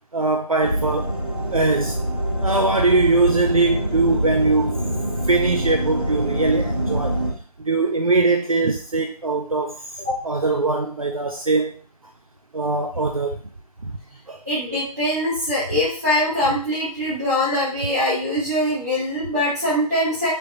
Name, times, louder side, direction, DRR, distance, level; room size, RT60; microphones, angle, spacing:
voice 1, 0.1-1.1 1.5-2.0 2.4-4.7 5.3-7.2 7.6-9.8 10.2-11.7 12.5-13.4 13.8-13.9 14.3-14.4, right 3 dB, 60° right, 2 dB, 0.5 m, -21 dB
sound 1, 0.6-7.3, right 1 dB, 15° left, 1.1 m, -25 dB
voice 2, 14.4-20.3, left 1 dB, 25° right, -12 dB, 1.1 m, -22 dB
3.4 x 2.9 x 2.5 m, 0.42 s
figure-of-eight pair, 180°, 20 cm